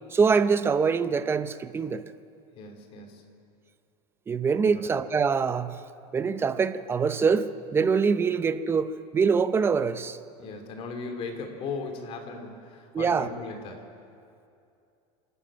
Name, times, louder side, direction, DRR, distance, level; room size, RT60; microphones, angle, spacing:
voice 1, 0.1-2.0 4.3-5.8 6.1-10.2 12.9-13.3, right 5 dB, 15° right, 12 dB, 0.6 m, -24 dB
voice 2, 2.6-3.3 4.6-4.9 10.4-13.9, left 4 dB, 35° left, 4 dB, 2.9 m, -37 dB
27.5 x 12.5 x 8.7 m, 2.5 s
supercardioid pair, 160°, 17 cm